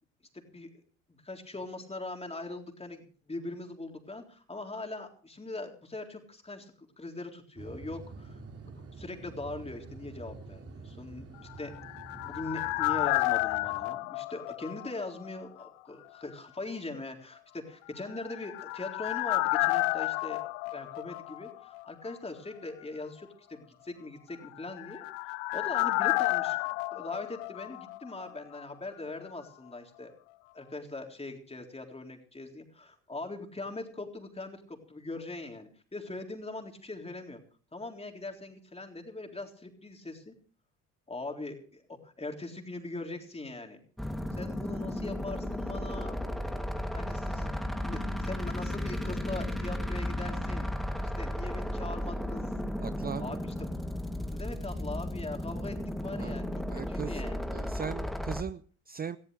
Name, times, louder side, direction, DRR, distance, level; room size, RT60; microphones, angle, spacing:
voice 1, 0.3-0.7 1.1-8.4 8.8-11.7 12.1-20.4 20.7-30.1 30.5-37.4 37.7-40.3 41.1-43.8 44.3-46.2 46.8-50.7 51.0-52.5 52.9-53.7 54.3-57.4, left 2 dB, 20° left, 3 dB, 3.8 m, -41 dB
sound 1, 7.6-13.9, right 3 dB, 45° right, 3.7 m, -47 dB
sound 2, 11.5-15.4 15.6-15.7 18.1-21.8 22.1-22.2 24.4-28.3 28.6-28.7, left 22 dB, 80° left, 0.6 m, -31 dB
sound 3, 44.0-58.4, left 1 dB, ahead, 1.8 m, -34 dB
voice 2, 52.8-53.4 56.2-56.4 56.7-57.2 57.5-59.2, right 7 dB, 25° right, 15 dB, 0.6 m, -39 dB
18.5 x 15.0 x 3.4 m, 0.41 s
hypercardioid pair, 60°, 34 cm